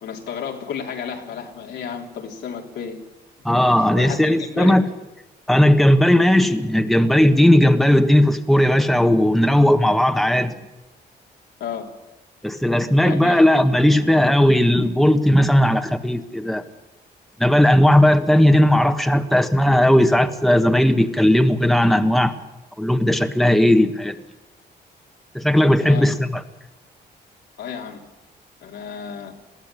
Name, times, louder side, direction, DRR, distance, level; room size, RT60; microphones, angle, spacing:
voice 1, 0.0-3.1 3.8-4.8 11.6-11.9 13.0-13.4 25.8-26.2 27.6-28.0 28.6-29.3, left 7 dB, 90° left, 1 dB, 3.3 m, -32 dB
voice 2, 3.4-4.8 5.5-10.6 12.4-16.6 17.4-22.3 22.8-24.2 25.3-26.4, left 1 dB, ahead, 6 dB, 1.4 m, -16 dB
21.5 x 15.0 x 9.0 m, 1.0 s
cardioid pair, 95°, 18 cm